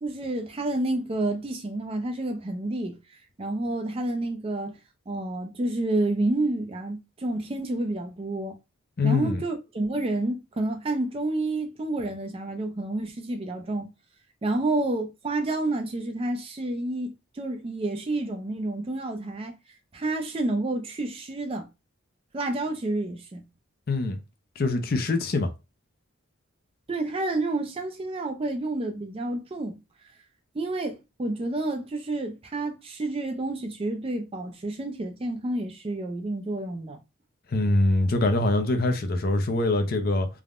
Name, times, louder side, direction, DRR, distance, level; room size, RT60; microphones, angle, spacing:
voice 1, 0.0-3.0 3.4-4.8 5.1-8.6 9.0-13.9 14.4-19.5 19.9-21.7 22.3-23.4 26.9-29.8 30.5-37.0, right 2 dB, 25° right, 0.4 m, -29 dB
voice 2, 9.0-9.4 23.9-24.2 24.6-25.5 37.5-40.3, left 2 dB, 45° left, 0.4 m, -24 dB
3.4 x 2.1 x 2.4 m
head